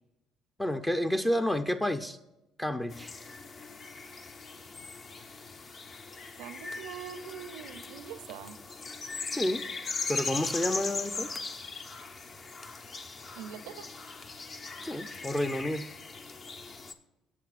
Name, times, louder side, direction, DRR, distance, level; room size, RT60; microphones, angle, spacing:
voice 1, 0.6-2.2 2.6-3.1 9.3-9.6 10.1-11.4 14.8-15.9, left 1 dB, 15° left, 7 dB, 0.6 m, -30 dB
sound 1, 2.9-16.9, left 4 dB, 45° left, 1.1 m, -39 dB
voice 2, 6.4-8.6 13.3-13.9, right 9 dB, 80° right, 12 dB, 0.6 m, -43 dB
19.0 x 7.8 x 2.5 m, 0.99 s
supercardioid pair, 75°, 0 cm